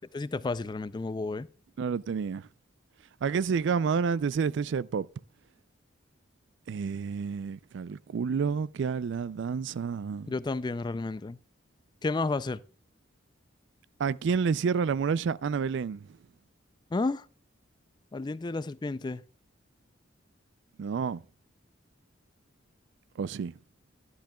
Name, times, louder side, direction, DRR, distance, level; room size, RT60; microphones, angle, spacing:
voice 1, 0.1-1.5 10.3-11.4 12.0-12.6 16.9-17.3 18.1-19.2, left 3 dB, 20° left, 0.3 m, -31 dB
voice 2, 1.8-2.5 3.2-5.1 6.7-10.3 14.0-16.1 20.8-21.2 23.2-23.5, right 6 dB, 65° right, 0.3 m, -29 dB
11.5 x 10.5 x 2.2 m
head